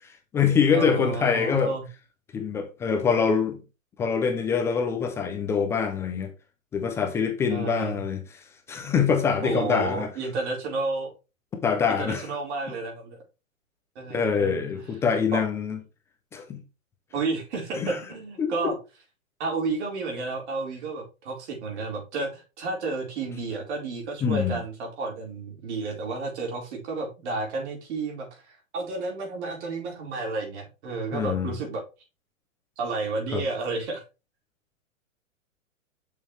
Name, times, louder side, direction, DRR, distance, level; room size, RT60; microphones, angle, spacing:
voice 1, 0.0-1.7 2.3-3.6 4.0-6.3 6.7-10.1 11.6-12.3 14.1-15.8 16.3-16.6 17.7-18.0 18.4-18.5 24.2-24.6 31.1-31.5 33.3-33.4, left 6 dB, 5° left, 0.4 m, -25 dB
voice 2, 0.7-1.8 7.5-8.0 9.4-11.1 11.9-13.2 14.0-14.8 15.3-15.4 17.1-18.7 19.4-31.8 32.8-34.0, right 3 dB, 55° right, 4.1 m, -31 dB
7.1 x 6.5 x 3.3 m
hypercardioid pair, 140°, 40 cm